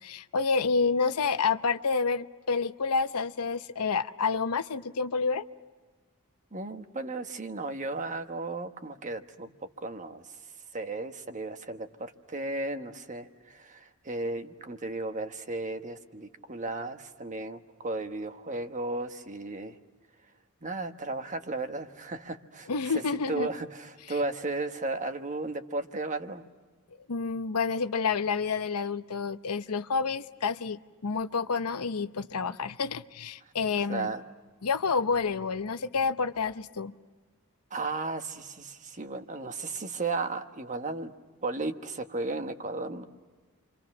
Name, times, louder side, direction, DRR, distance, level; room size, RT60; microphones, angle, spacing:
voice 1, 0.0-5.4 22.7-23.5 27.1-34.1 34.6-36.9, left 5 dB, 90° left, 12 dB, 0.8 m, -29 dB
voice 2, 6.5-9.5 9.8-10.2 10.7-19.8 20.6-22.9 23.3-26.4 33.9-34.2 37.7-41.1 41.4-43.0, right 3 dB, 35° right, 7 dB, 1.3 m, -35 dB
29.5 x 26.0 x 6.1 m, 1.3 s
head